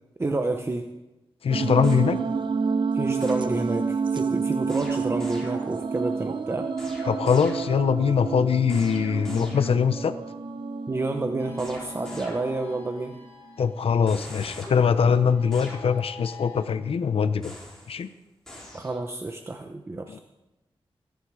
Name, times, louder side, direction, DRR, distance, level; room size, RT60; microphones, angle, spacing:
voice 1, 0.2-0.9 2.9-6.7 10.9-13.2 18.7-20.2, right 2 dB, 25° right, 5 dB, 0.8 m, -29 dB
voice 2, 1.4-2.2 7.1-10.2 13.6-17.5 17.9-18.1 20.1-20.2, left 6 dB, 80° left, 12 dB, 0.7 m, -22 dB
sound 1, 1.5-13.0, right 5 dB, 55° right, 0.8 m, -29 dB
sound 2, 1.8-2.6 3.2-4.1 4.7-6.0 6.8-8.1 8.7-10.0 11.6-12.9 14.1-16.3 17.4-18.1 18.5-19.0, left 1 dB, 5° left, 4.3 m, -44 dB
sound 3, 11.4-16.6, left 6 dB, 30° left, 4.6 m, -47 dB
21.0 x 10.5 x 4.8 m, 1.0 s
wide cardioid pair, 150°, 10 cm